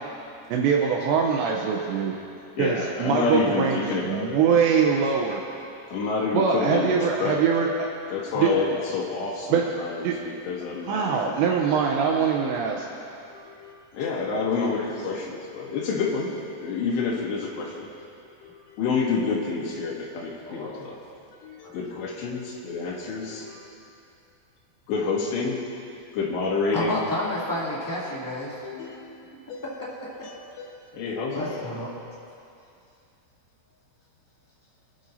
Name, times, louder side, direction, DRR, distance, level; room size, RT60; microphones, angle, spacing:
voice 1, 0.5-2.1 2.6-5.4 6.3-7.9 8.4-8.5 9.5-9.6 10.0-10.1 10.9-12.9, right 6 dB, 80° right, 0 dB, 2.9 m, -23 dB
voice 2, 2.5-4.4 5.9-7.4 8.1-11.6 13.3-16.3 16.6-17.9 18.4-21.0 21.4-23.7 24.9-25.6 26.1-27.0 28.6-29.6 29.9-31.7, left 4 dB, 70° left, -4 dB, 3.9 m, -29 dB
voice 3, 20.4-20.8 21.6-21.7 26.7-28.6 31.3-31.9, left 1 dB, 10° left, -9 dB, 0.9 m, -30 dB
26.0 x 10.5 x 2.8 m, 2.6 s
omnidirectional pair, 5.4 m